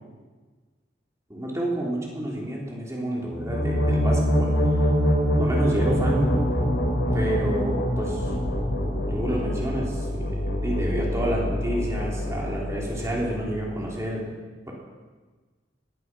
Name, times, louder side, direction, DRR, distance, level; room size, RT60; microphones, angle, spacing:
voice 1, 1.3-4.5 5.4-6.3 7.1-8.3 8.9-14.3, right 1 dB, 15° right, -3 dB, 3.3 m, -29 dB
sound 1, 3.3-14.0, equal, 80° left, 4.9 m, -25 dB
17.5 x 11.5 x 6.0 m, 1.4 s
head